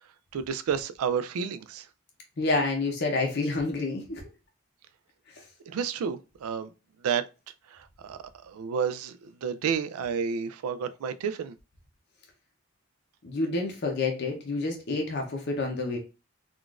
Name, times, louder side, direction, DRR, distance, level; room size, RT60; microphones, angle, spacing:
voice 1, 0.3-1.8 5.7-6.7 7.0-7.2 8.0-8.2 8.4-11.5, right 7 dB, 85° right, 0.3 m, -30 dB
voice 2, 2.4-4.2 13.2-16.0, left 3 dB, 50° left, 0.6 m, -28 dB
3.7 x 2.4 x 2.3 m
head